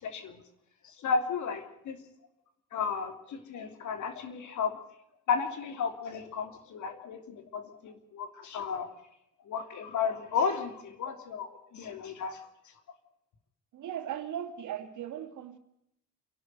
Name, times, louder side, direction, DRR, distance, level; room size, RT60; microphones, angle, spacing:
voice 1, 0.0-0.4 1.0-2.0 2.7-4.8 5.3-8.9 9.5-12.4, left 6 dB, 75° left, 3.2 m, -33 dB
voice 2, 13.7-15.6, right 10 dB, 80° right, 2.6 m, -38 dB
28.5 x 12.0 x 8.0 m
cardioid pair, 90°, 30 cm